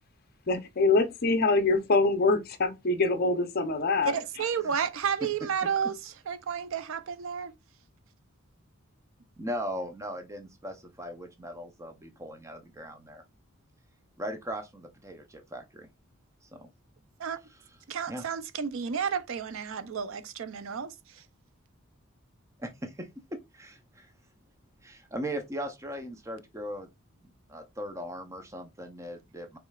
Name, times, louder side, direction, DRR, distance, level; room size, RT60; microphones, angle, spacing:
voice 1, 0.5-4.2, left 3 dB, 45° left, 0.6 m, -24 dB
voice 2, 4.0-7.5 17.2-17.4 17.9-21.2, right 7 dB, 65° right, 0.5 m, -32 dB
voice 3, 9.4-13.2 14.2-15.9 16.5-16.7 18.1-18.2 22.6-23.1 23.5-24.1 24.8-26.9 27.2-29.6, equal, 15° right, 0.6 m, -38 dB
4.8 x 3.1 x 2.3 m
head